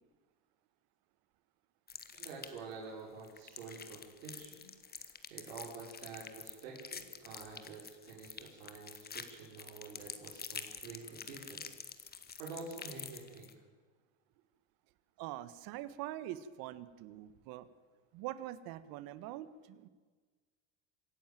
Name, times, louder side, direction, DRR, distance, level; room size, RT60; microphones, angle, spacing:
sound 1, 1.9-2.7 3.2-13.5, left 6 dB, 25° left, 1.6 m, -47 dB
voice 1, 2.1-11.6 12.0-12.1 12.4-13.5, right 4 dB, 90° right, -3 dB, 5.5 m, -48 dB
voice 2, 15.2-17.7 18.1-19.9, right 13 dB, 65° right, 15 dB, 1.4 m, -44 dB
26.0 x 11.0 x 9.1 m, 1.4 s
supercardioid pair, 110°, 38 cm